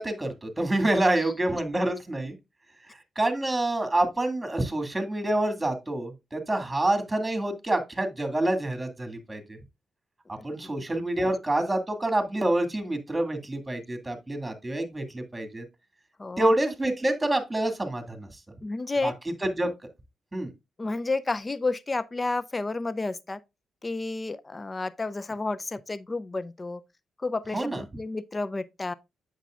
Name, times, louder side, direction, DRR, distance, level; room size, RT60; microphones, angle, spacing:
voice 1, 0.0-2.4 3.2-9.6 10.4-15.6 16.4-18.3 19.0-19.1 19.6-19.7 20.3-20.5 27.5-27.8, right 1 dB, 15° right, 2.2 m, -27 dB
voice 2, 10.3-10.7 16.2-16.5 18.6-19.1 20.8-23.4 23.8-26.8 27.2-28.9, left 3 dB, 30° left, 0.5 m, -31 dB
8.1 x 6.9 x 2.4 m
supercardioid pair, 50°, 0 cm